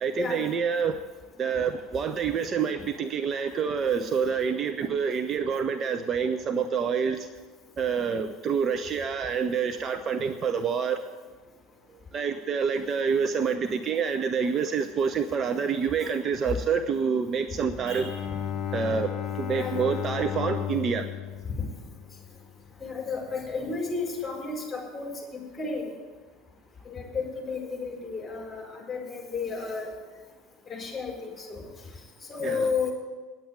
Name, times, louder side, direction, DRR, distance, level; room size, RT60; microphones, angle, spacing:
voice 1, 0.0-1.0 1.4-7.3 7.8-11.0 12.1-18.0 18.7-19.1 19.4-21.1 32.4-32.7, right 6 dB, 35° right, 8 dB, 0.7 m, -27 dB
Bowed string instrument, 17.5-22.8, left 9 dB, 35° left, 1.1 m, -34 dB
voice 2, 22.8-25.1 25.6-25.9 26.8-29.9 30.7-31.7 32.3-32.9, left 4 dB, 15° left, -1 dB, 4.9 m, -32 dB
10.0 x 8.6 x 9.4 m, 1.4 s
figure-of-eight pair, 70°, 0 cm